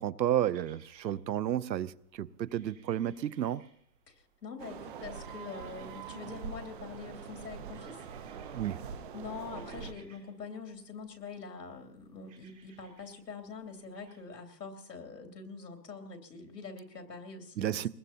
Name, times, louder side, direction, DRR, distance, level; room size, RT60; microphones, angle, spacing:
voice 1, 0.0-3.6 8.5-8.8 17.6-17.9, right 11 dB, 90° right, 0.7 m, -32 dB
sound 1, 0.5-14.2, right 6 dB, 15° right, 2.4 m, -65 dB
voice 2, 4.1-8.1 9.1-17.8, left 4 dB, 75° left, 3.0 m, -44 dB
sound 2, 4.6-9.9, right 7 dB, 30° right, 1.0 m, -44 dB
23.0 x 20.5 x 2.8 m
hypercardioid pair, 155°, 50 cm